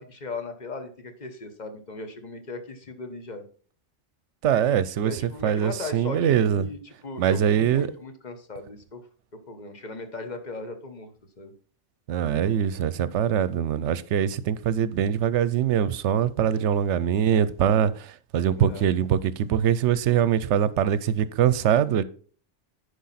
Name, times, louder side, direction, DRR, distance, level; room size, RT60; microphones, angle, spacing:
voice 1, 0.0-3.4 5.0-9.0 9.5-11.1 11.4-11.5 18.6-18.8, left 3 dB, 40° left, 1.1 m, -37 dB
voice 2, 4.4-6.7 7.2-7.9 12.1-22.0, right 9 dB, 75° right, 0.9 m, -23 dB
10.5 x 5.1 x 4.1 m
omnidirectional pair, 1.2 m